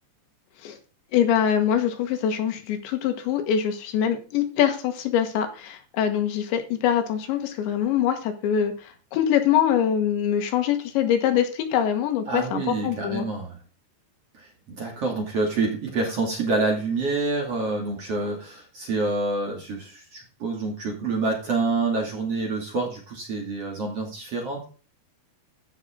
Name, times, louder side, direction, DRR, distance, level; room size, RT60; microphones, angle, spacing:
voice 1, 1.1-13.3, left 9 dB, 80° left, 6 dB, 3.7 m, -24 dB
voice 2, 12.3-13.6 14.4-24.6, right 3 dB, 40° right, 1 dB, 2.8 m, -27 dB
15.0 x 6.2 x 3.8 m, 0.36 s
omnidirectional pair, 5.3 m